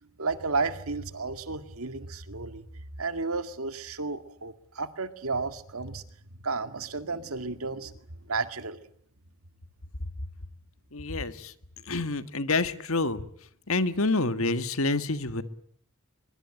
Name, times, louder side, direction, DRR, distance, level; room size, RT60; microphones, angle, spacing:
voice 1, 0.0-2.6 3.0-6.0 6.4-7.9 8.3-8.8, right 3 dB, 85° right, 9 dB, 2.1 m, -32 dB
voice 2, 10.9-11.3 11.9-13.2 13.7-15.4, left 3 dB, 75° left, 11 dB, 1.7 m, -27 dB
23.5 x 23.0 x 8.9 m, 0.67 s
head